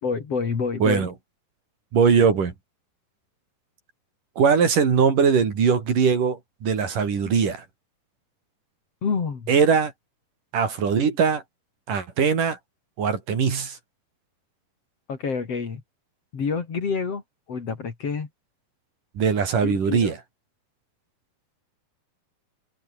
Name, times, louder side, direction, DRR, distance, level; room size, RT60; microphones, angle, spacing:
voice 1, 0.0-1.1 9.0-9.5 15.1-15.8 16.3-17.2 17.5-18.3 19.6-20.1, left 5 dB, 45° left, 3.7 m, -28 dB
voice 2, 0.8-1.1 1.9-2.5 4.4-7.6 9.5-9.9 10.5-11.4 11.9-12.6 13.0-13.8 19.1-20.2, right 6 dB, 60° right, 5.1 m, -21 dB
open air
omnidirectional pair, 4.2 m